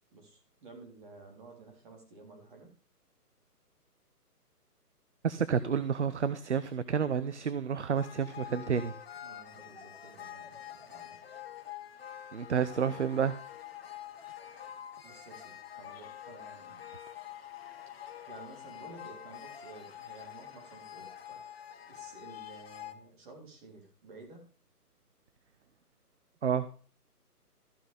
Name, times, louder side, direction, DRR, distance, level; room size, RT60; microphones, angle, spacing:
voice 1, 0.1-2.7 9.2-11.2 15.0-16.9 18.3-21.4 21.9-24.4, right 3 dB, 30° right, 3.7 m, -52 dB
voice 2, 5.2-9.0 12.3-13.4 26.4-26.7, right 7 dB, 50° right, 0.7 m, -30 dB
sound 1, 8.0-22.9, left 11 dB, 40° left, 1.2 m, -46 dB
14.5 x 6.1 x 5.0 m
figure-of-eight pair, 145°, 47 cm